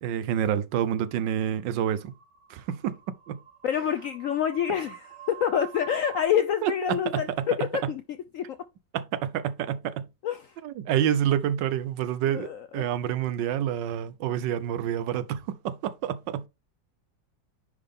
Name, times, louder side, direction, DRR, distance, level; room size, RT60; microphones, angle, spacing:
voice 1, 0.0-2.1 2.5-3.0 3.3-3.4 6.6-7.5 8.9-10.1 10.6-16.5, right 10 dB, 80° right, 1.4 m, -28 dB
sound 1, 0.7-6.2, right 11 dB, 45° right, 1.3 m, -47 dB
voice 2, 3.6-8.0 8.3-8.6 10.2-10.4 12.3-12.9, left 9 dB, 75° left, 0.7 m, -27 dB
9.7 x 3.5 x 3.7 m
omnidirectional pair, 1.9 m